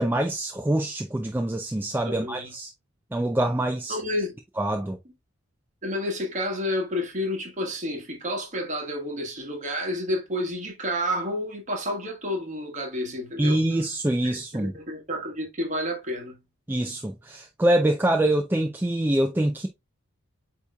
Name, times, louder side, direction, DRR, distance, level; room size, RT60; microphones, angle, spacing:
voice 1, 0.0-2.7 3.1-4.0 4.6-5.0 13.4-14.7 16.7-19.7, right 1 dB, 10° right, 0.3 m, -25 dB
voice 2, 2.0-2.5 3.9-4.3 5.8-13.6 14.2-16.4, left 1 dB, 35° right, 1.3 m, -30 dB
8.1 x 2.9 x 2.2 m
head